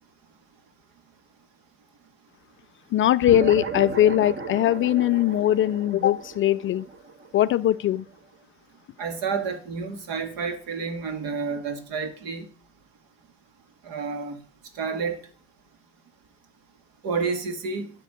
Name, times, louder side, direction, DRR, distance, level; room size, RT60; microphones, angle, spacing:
voice 1, 2.9-6.9 7.3-8.0, left 12 dB, 30° left, 0.4 m, -21 dB
sound 1, 3.2-8.0, right 4 dB, 30° right, 1.6 m, -35 dB
voice 2, 9.0-12.5 13.8-14.4 14.7-15.2 17.0-17.9, right 5 dB, 55° right, 2.4 m, -30 dB
12.5 x 5.2 x 8.0 m
hypercardioid pair, 70°, 39 cm